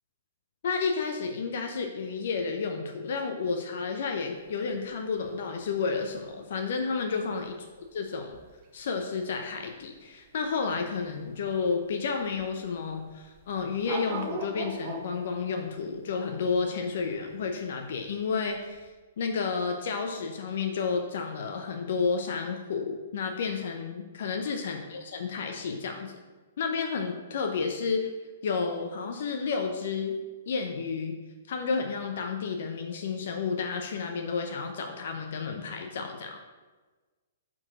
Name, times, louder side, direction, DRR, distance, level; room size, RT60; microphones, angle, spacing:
voice 1, 0.6-7.6 7.9-8.4 8.7-18.9 19.2-26.2 26.6-28.1 28.4-30.1 30.5-31.2 31.5-36.4, left 5 dB, 60° left, 4 dB, 0.8 m, -31 dB
sound 1, 4.4-18.9, right 3 dB, 35° right, 1.1 m, -42 dB
5.9 x 4.5 x 5.9 m, 1.3 s
figure-of-eight pair, 120°, 0 cm